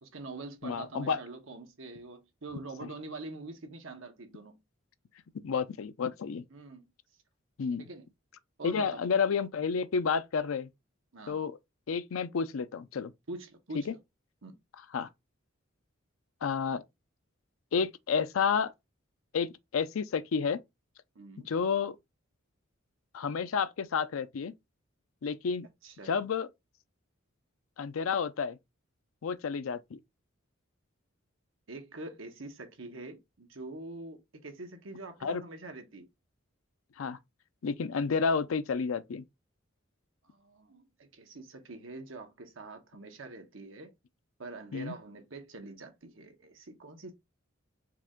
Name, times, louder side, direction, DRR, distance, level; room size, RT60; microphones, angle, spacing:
voice 1, 0.0-4.6 6.5-6.8 7.8-8.1 8.6-9.0 11.1-11.4 13.3-13.9 14.4-14.6 21.1-21.5 25.8-26.2 31.7-36.1 40.2-43.9 44.4-47.1, right 2 dB, 75° right, 1.1 m, -45 dB
voice 2, 0.6-1.2 5.4-6.4 7.6-7.9 8.6-10.7 11.3-11.6 11.9-13.1 13.7-13.9 14.9-15.1 16.4-16.8 17.7-18.7 19.3-20.6 21.5-22.0 23.1-24.5 25.2-25.7 26.0-26.5 27.8-28.6 29.2-30.0 35.2-35.4 37.0-37.2 37.6-39.2 44.7-44.9, left 6 dB, 85° left, 0.4 m, -30 dB
4.7 x 2.4 x 3.7 m
head